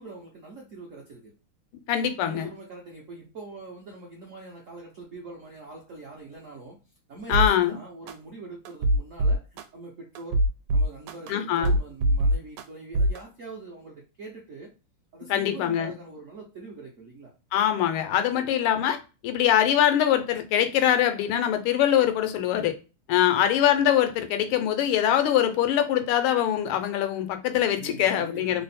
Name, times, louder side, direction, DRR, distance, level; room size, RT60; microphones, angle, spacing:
voice 1, 0.0-1.3 2.2-6.8 7.1-10.4 10.7-14.7 15.1-17.3 23.1-23.4 27.8-28.6, right 3 dB, 65° right, 0.8 m, -43 dB
voice 2, 1.9-2.5 7.3-7.8 11.3-11.7 15.3-15.9 17.5-19.0 19.2-22.7 23.1-28.6, left 10 dB, 85° left, 1.5 m, -23 dB
sound 1, 7.3-7.5 8.1-8.2 8.7-9.6 10.2-11.3 11.6-12.6 12.9-13.2, right 1 dB, 90° right, 1.5 m, -22 dB
3.6 x 2.0 x 4.1 m
omnidirectional pair, 2.4 m